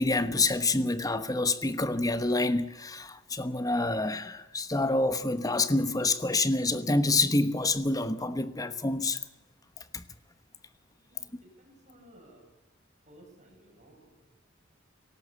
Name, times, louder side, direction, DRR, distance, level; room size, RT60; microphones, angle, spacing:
voice 1, 0.0-9.2 9.9-10.0, left 2 dB, 20° left, 1.1 m, -27 dB
voice 2, 11.1-12.5 13.0-14.3, right 1 dB, 35° right, 7.7 m, -56 dB
18.0 x 18.0 x 8.4 m
head